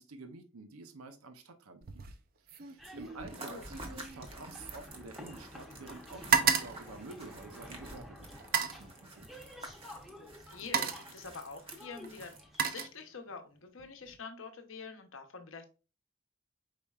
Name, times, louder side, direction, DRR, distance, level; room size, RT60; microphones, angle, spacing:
voice 1, 0.0-2.0 2.5-9.3, right 3 dB, 85° right, 0.6 m, -49 dB
sound 1, 1.8-2.2 2.5-5.6 5.9-7.8 8.4-8.9 9.9-10.1 10.5-11.2 12.0-13.4 13.8-14.2, right 7 dB, 45° right, 0.5 m, -33 dB
sound 2, 2.8-12.7, left 1 dB, ahead, 0.7 m, -51 dB
sound 3, 3.3-13.0, right 2 dB, 25° right, 0.9 m, -51 dB
voice 2, 3.4-3.7 10.2-12.3 12.6-15.7, left 4 dB, 65° left, 0.8 m, -46 dB
5.0 x 4.2 x 2.3 m
head